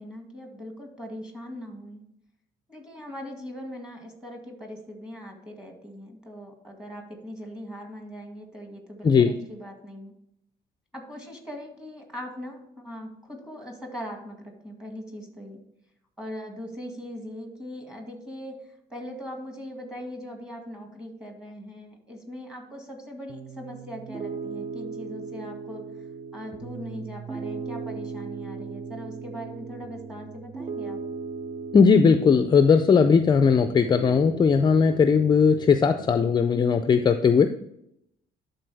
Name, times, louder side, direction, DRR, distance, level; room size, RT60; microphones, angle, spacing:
voice 1, 0.0-2.0 2.7-10.1 10.9-15.6 16.2-25.8 26.3-31.0, equal, 5° right, 2 dB, 1.9 m, -40 dB
Piano, 23.3-36.4, right 5 dB, 30° right, 0.4 m, -37 dB
voice 2, 31.7-37.5, left 6 dB, 25° left, 9 dB, 0.4 m, -18 dB
11.5 x 4.0 x 3.4 m, 0.77 s
cardioid pair, 110°, 17 cm